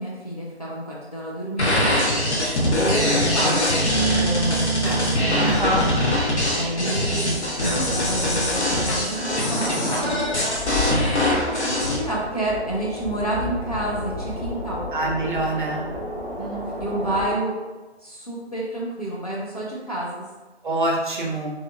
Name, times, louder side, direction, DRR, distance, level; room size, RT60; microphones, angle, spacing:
voice 1, 0.0-2.0 2.7-5.4 6.5-10.2 10.6-14.9 16.4-17.6 18.0-20.3, right 1 dB, 35° left, -6 dB, 0.5 m, -29 dB
sound 1, 1.6-12.0, equal, 80° left, 0.9 m, -22 dB
sound 2, 2.4-17.3, left 1 dB, 50° left, 1.5 m, -35 dB
Cough, 4.1-4.4 4.8-5.1 5.5-5.8 7.6-8.0 8.6-9.4, equal, 20° left, 1.0 m, -33 dB
voice 2, 5.3-5.9 14.9-15.8 20.6-21.5, right 1 dB, 45° right, -1 dB, 0.7 m, -24 dB
3.3 x 3.0 x 2.3 m, 1.2 s
figure-of-eight pair, 155°, 33 cm